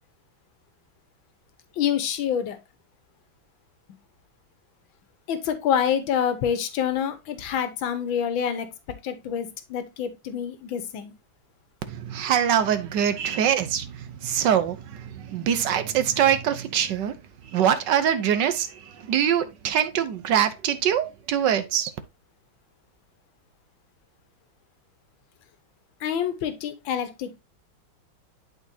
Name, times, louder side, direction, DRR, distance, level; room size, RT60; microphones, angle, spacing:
voice 1, 1.8-2.6 5.3-8.7 9.0-11.1 26.0-27.4, left 8 dB, 80° left, 1.7 m, -27 dB
voice 2, 11.9-17.2 17.4-21.9, right 9 dB, 70° right, 1.4 m, -24 dB
11.5 x 4.0 x 2.7 m
omnidirectional pair, 2.1 m